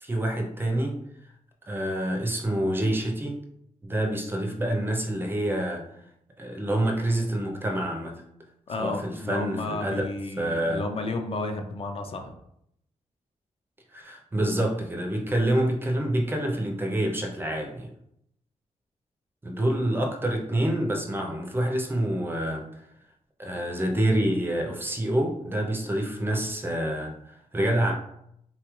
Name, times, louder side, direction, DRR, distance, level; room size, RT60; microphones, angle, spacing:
voice 1, 0.0-1.0 1.7-3.4 3.8-5.9 6.4-8.2 8.8-10.0 10.4-10.8 13.9-17.9 19.4-22.7 23.4-27.9, right 1 dB, 15° right, 1 dB, 0.4 m, -27 dB
voice 2, 8.7-12.4, left 2 dB, 45° left, 5 dB, 0.4 m, -32 dB
3.8 x 2.3 x 3.0 m, 0.75 s
wide cardioid pair, 155°, 13 cm